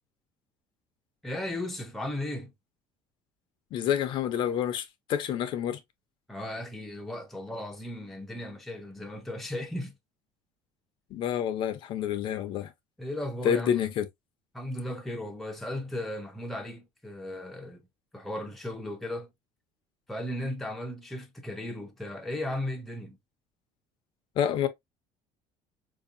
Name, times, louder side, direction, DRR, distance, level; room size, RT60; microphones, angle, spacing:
voice 1, 1.2-2.5 6.3-9.9 13.0-13.9 14.5-17.9 18.1-19.3 20.1-23.2, left 1 dB, ahead, 0.6 m, -36 dB
voice 2, 3.7-5.8 11.1-12.7 13.4-14.1 24.4-24.7, left 9 dB, 50° left, 0.6 m, -28 dB
4.6 x 2.7 x 2.5 m
cardioid pair, 155°, 11 cm